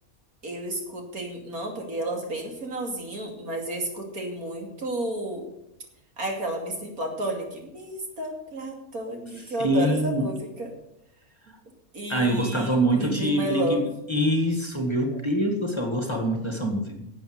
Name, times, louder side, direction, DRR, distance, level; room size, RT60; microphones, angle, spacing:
voice 1, 0.4-5.5 6.2-10.7 11.9-13.8 15.1-15.2, right 1 dB, 75° right, 2 dB, 3.1 m, -32 dB
voice 2, 9.6-10.2 12.1-13.8 14.1-17.1, right 1 dB, 20° left, 4 dB, 1.8 m, -24 dB
12.0 x 7.9 x 7.9 m, 0.85 s
omnidirectional pair, 1.5 m